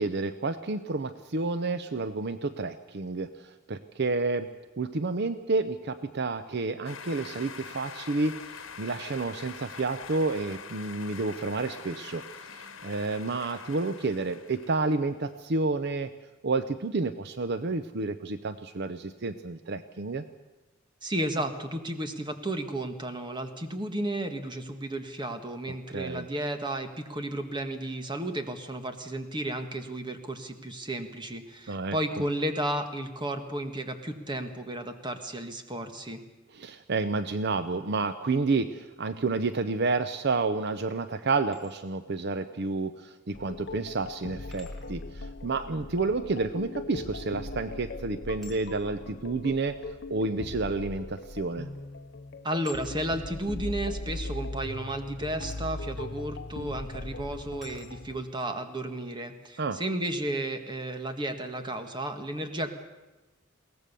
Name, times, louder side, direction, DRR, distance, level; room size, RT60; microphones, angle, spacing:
voice 1, 0.0-4.5 4.8-16.1 16.4-20.2 25.9-26.3 31.7-32.0 36.5-49.8 50.1-51.7 59.6-59.8, right 3 dB, 55° right, 11 dB, 0.7 m, -30 dB
sound 1, 6.8-15.2, left 6 dB, 80° left, 1.4 m, -44 dB
voice 2, 21.0-36.2 52.4-62.7, right 1 dB, 25° right, 7 dB, 1.6 m, -33 dB
sound 2, 41.3-41.7 43.3-43.4 44.5-44.9 47.2-47.5 48.4-48.7 49.9-50.0 51.2-51.4 51.7-52.0 52.6-53.0 55.4-55.7 56.5-56.6 57.6-57.9, left 4 dB, ahead, 3.0 m, -51 dB
sound 3, 43.3-58.2, left 2 dB, 60° left, 0.9 m, -39 dB
22.0 x 17.5 x 6.9 m, 1.1 s
head